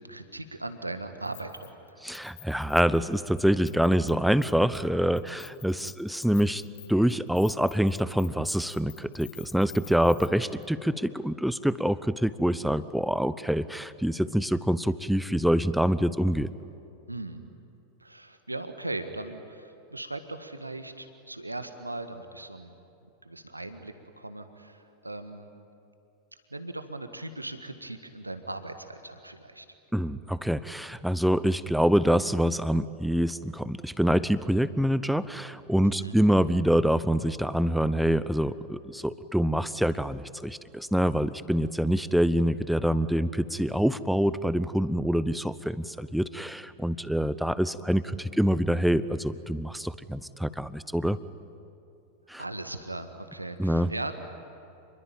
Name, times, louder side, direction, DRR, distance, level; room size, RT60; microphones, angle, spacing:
voice 1, 0.0-2.0 17.1-17.4 18.0-22.7 23.2-25.5 26.3-29.6 35.8-36.2 52.4-54.1, right 2 dB, 85° right, 8 dB, 1.7 m, -38 dB
Keys jangling, 1.3-1.9 2.1-4.1 4.4-4.9 5.2-10.3 10.6-10.7, left 14 dB, 55° left, 1.4 m, -49 dB
voice 2, 2.0-6.6 6.9-16.5 29.9-51.2 52.3-52.4 53.6-53.9, equal, ahead, 16 dB, 0.8 m, -26 dB
29.0 x 22.0 x 9.1 m, 2.7 s
figure-of-eight pair, 90°, 0 cm